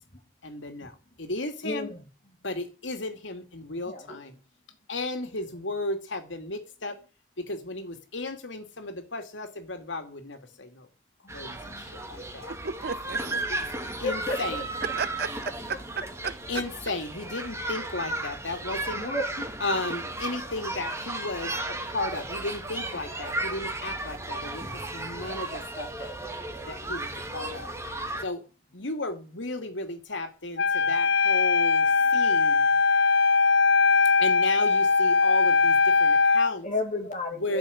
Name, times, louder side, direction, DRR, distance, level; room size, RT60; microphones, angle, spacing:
voice 1, 0.4-0.9 1.2-1.9 2.4-4.3 4.9-7.0 7.5-10.9 11.3-12.5 13.5-14.6 16.5-19.0 19.6-21.5 21.9-26.1 26.7-27.7 28.2-28.4 28.7-31.8 32.1-32.6 34.2-36.7 37.3-37.6, left 2 dB, 85° left, 2.5 m, -34 dB
voice 2, 1.6-2.0 3.7-4.2 11.3-11.4 11.6-11.8 14.0-14.6 18.9-19.5 36.6-37.6, left 2 dB, 45° left, 2.4 m, -32 dB
sound 1, 11.3-28.2, right 2 dB, 15° right, 2.2 m, -34 dB
voice 3, 12.5-13.4 15.0-15.3 15.7-16.6, right 5 dB, 60° right, 0.9 m, -34 dB
Wind instrument woodwind instrument, 30.6-36.5, left 4 dB, 65° left, 0.8 m, -21 dB
13.0 x 6.9 x 8.6 m
head